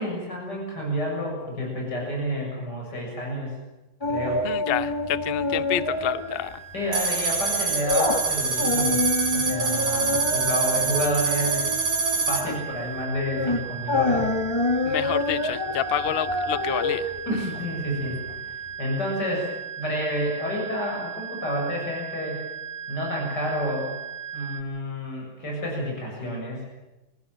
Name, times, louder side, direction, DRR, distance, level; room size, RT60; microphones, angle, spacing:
voice 1, 0.0-3.6 4.1-4.4 6.7-9.0 9.3-11.7 12.3-14.3 17.3-18.2 18.8-19.5 19.8-22.5 22.9-23.9 24.3-26.7, equal, 50° left, -1 dB, 7.4 m, -29 dB
sound 1, 4.0-6.4 6.7-6.9 7.4-18.3 18.7-18.8, left 2 dB, 15° left, 1.6 m, -27 dB
voice 2, 4.4-6.6 14.8-17.1, left 10 dB, 90° left, 15 dB, 0.5 m, -29 dB
sound 2, 5.5-24.6, right 8 dB, 80° right, 3.1 m, -37 dB
sound 3, 6.9-12.4, right 4 dB, 35° right, 2.1 m, -25 dB
23.5 x 15.5 x 9.1 m, 1.0 s
omnidirectional pair, 2.3 m